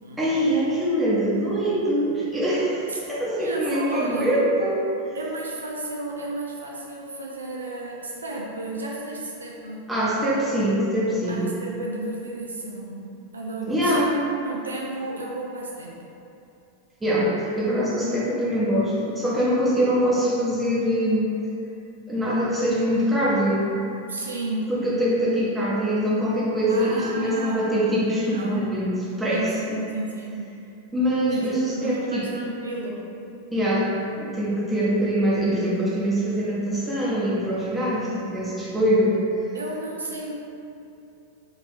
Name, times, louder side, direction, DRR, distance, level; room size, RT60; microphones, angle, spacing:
voice 1, 0.2-4.9 9.9-11.5 13.7-14.2 17.0-21.3 22.1-23.7 24.7-28.9 29.2-29.8 30.9-32.2 33.5-33.9 34.2-39.2, equal, 10° right, -8 dB, 0.9 m, -23 dB
voice 2, 2.9-4.3 5.1-9.9 11.3-13.1 13.3-14.1 14.4-16.0 24.1-24.7 26.7-27.9 28.3-28.9 29.3-30.5 31.3-31.4 31.7-33.0 39.5-40.3, right 2 dB, 75° right, -2 dB, 0.3 m, -33 dB
3.6 x 2.8 x 2.8 m, 2.8 s
figure-of-eight pair, 90°, 0 cm